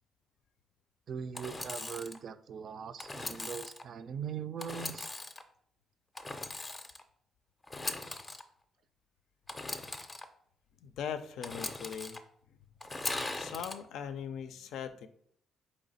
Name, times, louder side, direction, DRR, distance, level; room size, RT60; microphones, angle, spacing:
voice 1, 1.1-5.1, right 7 dB, 60° right, 12 dB, 0.3 m, -41 dB
Engine / Sawing, 1.3-2.2 3.0-3.8 4.6-5.4 6.2-7.0 7.6-8.4 9.5-10.2 11.4-12.2 12.8-13.8, left 2 dB, 25° left, 0.5 m, -39 dB
voice 2, 10.8-12.2 12.5-12.6 13.1-15.1, left 8 dB, 80° left, 11 dB, 0.4 m, -40 dB
4.1 x 3.1 x 4.0 m, 0.66 s
cardioid pair, 90°, 0 cm